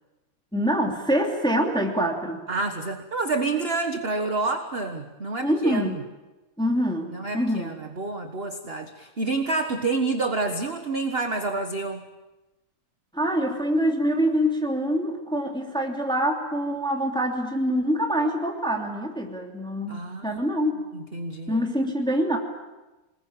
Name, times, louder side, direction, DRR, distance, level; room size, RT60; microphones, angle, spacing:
voice 1, 0.5-2.4 5.4-6.0 6.6-7.7 13.1-20.8 21.5-22.4, equal, ahead, 1 dB, 2.8 m, -25 dB
voice 2, 2.5-6.0 7.1-12.0 19.9-20.4 20.9-21.6, right 3 dB, 30° right, 6 dB, 1.3 m, -28 dB
27.0 x 20.0 x 8.9 m, 1.1 s
omnidirectional pair, 2.4 m